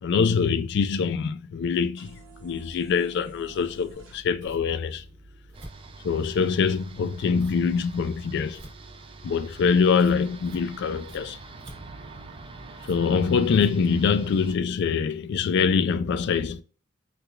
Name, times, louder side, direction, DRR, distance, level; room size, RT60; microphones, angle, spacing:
voice 1, 0.0-5.0 6.0-8.6 9.2-11.4 12.9-16.6, left 5 dB, 55° left, 0.3 m, -24 dB
sound 1, 2.0-4.2, right 2 dB, 90° right, 0.8 m, -49 dB
Scissors, 3.9-14.6, right 1 dB, 65° right, 1.2 m, -49 dB
sound 2, 5.5-14.6, right 3 dB, 25° right, 0.3 m, -46 dB
4.6 x 2.3 x 2.3 m
head